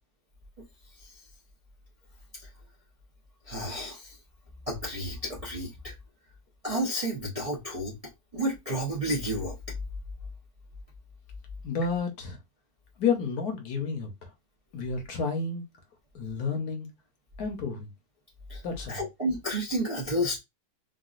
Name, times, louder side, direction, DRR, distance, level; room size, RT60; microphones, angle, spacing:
voice 1, 3.5-4.2 4.7-5.9 6.6-7.9 8.3-9.5 18.5-18.6 18.9-20.4, equal, 35° right, 0.6 m, -31 dB
voice 2, 11.6-12.4 13.0-14.3 14.7-15.7 16.1-16.9 17.4-17.9 18.6-19.0, left 5 dB, 65° left, 1.3 m, -30 dB
3.8 x 2.4 x 2.4 m
omnidirectional pair, 1.8 m